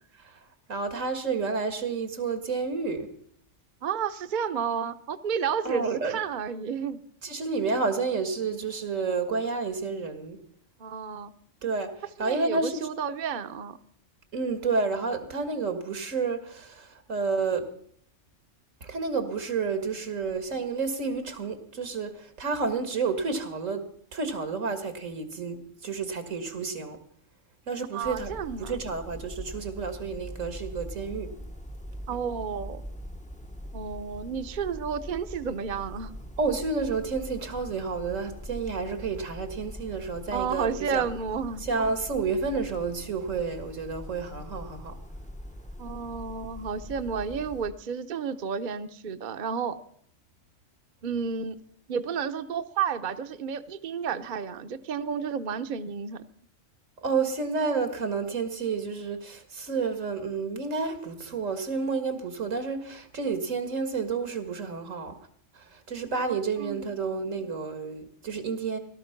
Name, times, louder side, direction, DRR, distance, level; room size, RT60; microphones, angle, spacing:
voice 1, 0.7-3.1 5.7-6.2 7.2-10.4 11.6-12.8 14.3-17.7 18.8-23.8 24.1-27.0 27.7-28.3 28.6-31.3 36.4-41.1 41.6-45.0 57.0-65.2 65.6-68.8, right 4 dB, 85° right, 8 dB, 2.1 m, -30 dB
voice 2, 3.8-7.0 10.8-11.3 12.2-13.8 27.9-28.7 32.1-32.8 33.7-36.1 40.3-41.6 45.8-49.8 51.0-51.6 51.9-56.2 66.6-67.0, right 6 dB, 45° right, 9 dB, 0.8 m, -31 dB
sound 1, 28.0-47.7, equal, 10° left, 0.6 m, -42 dB
17.5 x 12.5 x 5.9 m, 0.63 s
omnidirectional pair, 1.3 m